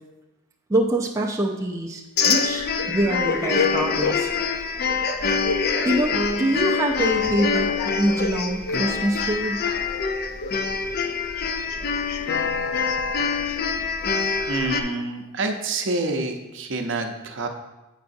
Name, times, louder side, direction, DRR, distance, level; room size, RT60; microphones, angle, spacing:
voice 1, 0.7-4.7 5.8-7.7 7.9-9.6, right 1 dB, 15° right, -2 dB, 0.4 m, -25 dB
sound 1, 2.2-14.8, left 5 dB, 50° left, 0.4 m, -24 dB
voice 2, 14.5-17.5, right 3 dB, 65° right, 5 dB, 0.6 m, -27 dB
8.0 x 4.7 x 2.6 m, 1.1 s
head